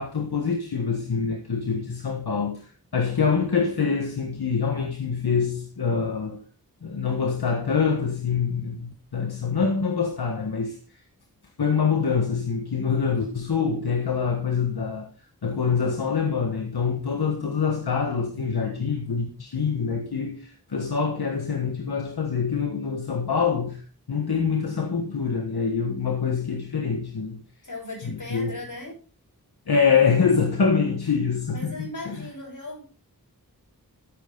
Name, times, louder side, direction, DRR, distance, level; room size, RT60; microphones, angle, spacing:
voice 1, 0.0-6.4 6.8-11.0 11.6-15.1 15.4-23.8 24.1-27.4 28.0-28.5 29.7-31.7 32.0-32.3, left 5 dB, 85° left, 1.5 m, -25 dB
voice 2, 27.6-28.9 31.5-32.8, left 2 dB, 55° left, 7.9 m, -37 dB
13.5 x 8.7 x 3.9 m
wide cardioid pair, 65°, 37 cm